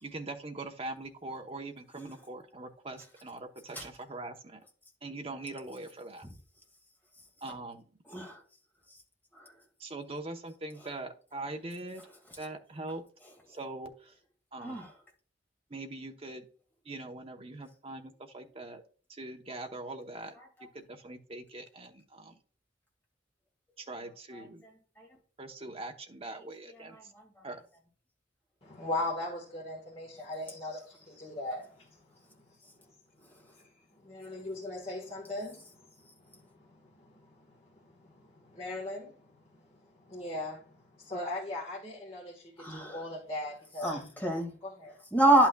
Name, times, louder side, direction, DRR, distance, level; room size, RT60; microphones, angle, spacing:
voice 1, 0.0-4.6 5.0-6.3 7.4-7.8 9.8-12.1 12.4-13.0 13.5-14.1 14.5-14.8 15.7-16.5 16.9-18.8 19.1-20.3 20.6-22.4 23.8-24.6 25.4-27.0 27.4-27.6, right 2 dB, 30° right, 0.8 m, -42 dB
voice 2, 28.6-32.0 32.4-32.6 33.5-33.7 34.0-44.0 44.6-45.0, left 1 dB, 35° left, 1.4 m, -40 dB
voice 3, 42.6-43.0 43.8-44.5 45.1-45.5, right 1 dB, 10° left, 2.0 m, -26 dB
11.0 x 5.9 x 2.3 m
head